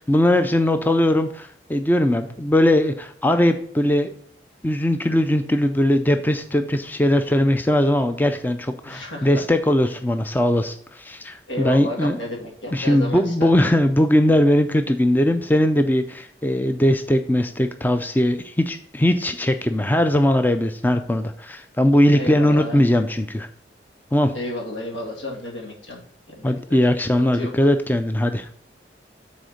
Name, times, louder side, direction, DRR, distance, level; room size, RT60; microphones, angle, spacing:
voice 1, 0.0-4.1 4.6-12.2 12.7-23.5 24.1-24.3 26.4-28.5, left 1 dB, 10° left, 8 dB, 0.4 m, -20 dB
voice 2, 8.8-9.3 11.5-13.5 22.1-22.8 24.3-26.0 26.3-26.8 27.2-27.5, left 1 dB, 90° left, -1 dB, 2.2 m, -32 dB
6.5 x 4.2 x 6.3 m, 0.63 s
head